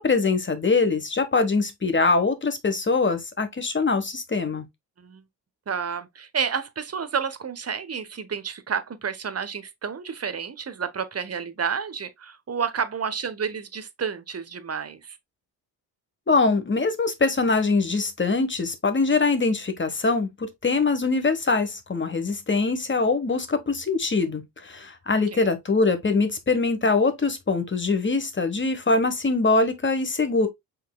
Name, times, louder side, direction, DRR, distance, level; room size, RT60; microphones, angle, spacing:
voice 1, 0.0-4.7 16.3-30.5, left 3 dB, 25° left, 1.4 m, -23 dB
voice 2, 5.7-15.2 25.3-25.5, right 6 dB, 35° right, 1.0 m, -30 dB
5.6 x 3.8 x 2.3 m
supercardioid pair, 55°, 43 cm